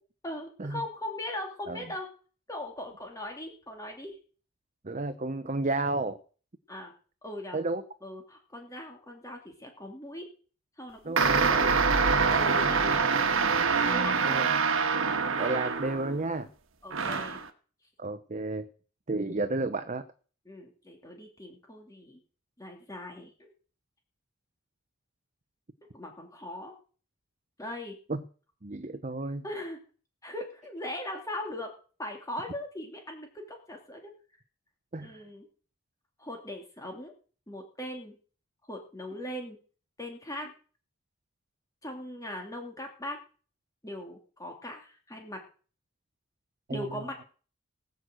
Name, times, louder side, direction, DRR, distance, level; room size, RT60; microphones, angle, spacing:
voice 1, 0.2-2.1 2.5-4.2 6.7-6.9 7.2-7.6 8.0-10.3 10.8-11.7 12.3-13.1 13.8-14.6 15.0-15.7 16.8-17.4 20.5-22.2 22.6-23.5 25.8-26.7 27.6-28.0 29.4-29.8 30.2-31.7 32.0-34.1 35.0-35.5 36.2-37.1 37.5-38.2 38.7-39.6 40.0-40.5 41.8-43.2 43.8-45.4 46.7-47.2, left 1 dB, 15° left, 2 dB, 2.7 m, -39 dB
voice 2, 4.8-6.2 7.5-7.8 11.0-11.4 14.2-14.6 15.4-16.5 18.0-18.7 19.1-20.1 28.1-28.2 28.6-29.4 34.9-35.2 46.7-47.1, right 2 dB, 35° right, 10 dB, 0.8 m, -32 dB
sound 1, 11.2-16.2 16.9-17.5, right 5 dB, 65° right, 1.5 m, -25 dB
19.0 x 6.5 x 7.7 m, 0.40 s
head